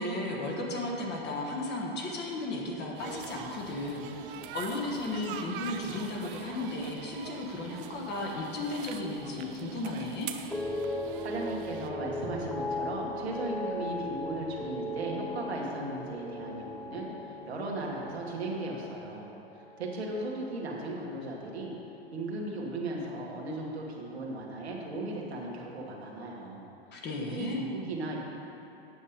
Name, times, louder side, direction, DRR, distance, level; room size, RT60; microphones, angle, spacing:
voice 1, 0.0-10.3 26.9-27.6, left 2 dB, 35° left, -1 dB, 1.3 m, -34 dB
sound 1, 3.0-11.9, right 8 dB, 55° right, 0.6 m, -44 dB
sound 2, 10.5-20.9 21.2-21.7, left 1 dB, 5° left, 0.3 m, -38 dB
voice 2, 11.2-21.7 22.1-26.6 26.9-27.0 27.3-28.2, right 2 dB, 85° right, -2 dB, 1.6 m, -37 dB
8.6 x 5.5 x 5.0 m, 2.8 s
hypercardioid pair, 105°, 31 cm